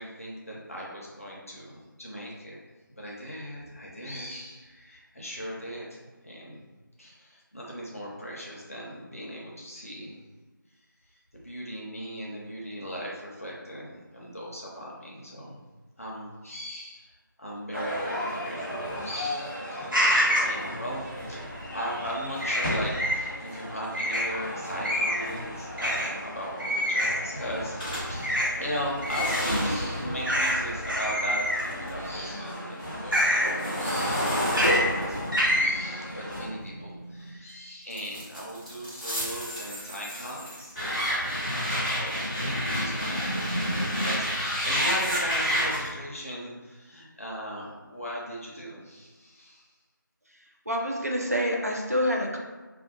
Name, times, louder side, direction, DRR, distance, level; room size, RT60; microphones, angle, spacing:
voice 1, 0.0-2.6 2.9-6.6 7.0-10.2 11.3-15.6 16.0-31.5 31.8-40.8 42.0-49.7, equal, 40° left, -4 dB, 0.6 m, -38 dB
sound 1, 17.7-36.5, equal, 10° right, 0.9 m, -37 dB
sound 2, 19.9-20.5 22.4-23.2 23.9-24.3 24.8-25.3 25.8-26.1 26.6-27.2 28.2-28.5 29.0-29.4 30.2-30.6 30.8-31.7 33.1-33.5 34.5-34.8 35.3-35.7, equal, 70° right, 1.0 m, -25 dB
sound 3, 27.8-32.1 32.4-37.3 37.9-45.9, equal, 10° left, 0.7 m, -30 dB
voice 2, 50.7-52.4, equal, 45° right, 0 dB, 0.4 m, -27 dB
2.4 x 2.2 x 3.7 m, 1.3 s
figure-of-eight pair, 170°, 11 cm